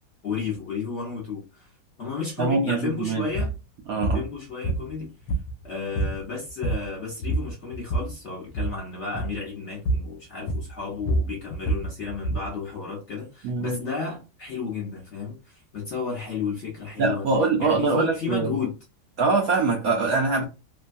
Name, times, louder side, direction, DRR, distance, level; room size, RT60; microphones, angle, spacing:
voice 1, 0.2-1.7 2.0-3.6 4.1-5.1 5.6-17.3 17.6-18.8, left 5 dB, 55° left, 0.8 m, -33 dB
voice 2, 2.4-3.3 3.9-4.2 13.4-13.8 17.0-18.6 19.2-20.4, right 3 dB, 70° right, 0.8 m, -23 dB
sound 1, 3.4-3.6 4.0-4.3 4.6-5.7 6.0-6.2 6.5-6.9 7.2-8.1 8.5-8.8 9.1-9.4 9.9-10.1 10.5-12.5, right 1 dB, 80° left, 1.3 m, -27 dB
3.1 x 2.2 x 2.5 m
omnidirectional pair, 2.0 m